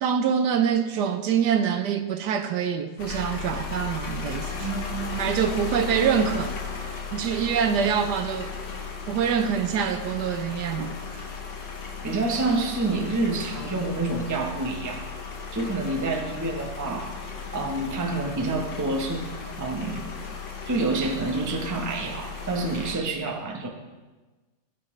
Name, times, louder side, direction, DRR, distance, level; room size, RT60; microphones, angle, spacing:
voice 1, 0.0-4.7 5.2-6.6 7.1-8.5 9.1-11.3, right 7 dB, 75° right, 9 dB, 1.1 m, -25 dB
sound 1, 3.0-23.0, left 5 dB, 80° left, 1.8 m, -36 dB
voice 2, 4.6-5.2 7.7-7.9 12.0-15.1 15.5-17.2 17.5-19.2 19.6-20.0 20.7-23.7, right 3 dB, 20° right, 2 dB, 0.5 m, -28 dB
18.0 x 6.2 x 3.2 m, 1.3 s
omnidirectional pair, 1.9 m